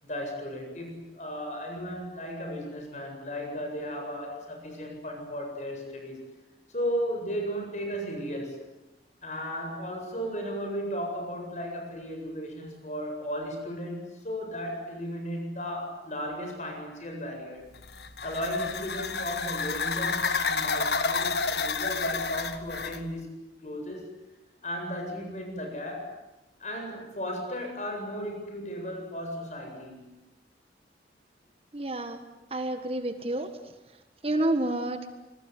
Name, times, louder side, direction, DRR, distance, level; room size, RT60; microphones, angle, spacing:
voice 1, 0.0-6.3 6.7-8.6 9.2-17.7 18.2-23.3 23.6-24.1 24.6-26.1 26.6-30.2, equal, 40° left, 3 dB, 8.0 m, -35 dB
sound 1, 17.7-23.0, left 4 dB, 70° left, 1.7 m, -30 dB
voice 2, 31.7-32.2 32.5-33.5 34.2-35.1, right 1 dB, 35° right, 8 dB, 1.6 m, -29 dB
27.0 x 21.0 x 9.7 m, 1.0 s
head